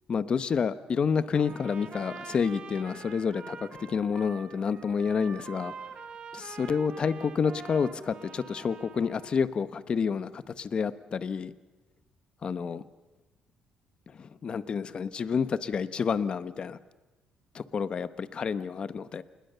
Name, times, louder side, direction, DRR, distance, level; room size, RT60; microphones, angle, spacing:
voice 1, 0.1-5.7 6.3-11.5 12.4-12.8 14.1-16.8 17.5-19.2, left 6 dB, 35° left, 14 dB, 1.0 m, -29 dB
Trumpet, 1.3-9.4, right 6 dB, 40° right, 1.5 m, -45 dB
27.0 x 21.0 x 6.8 m, 1.2 s
cardioid pair, 140°, 3 cm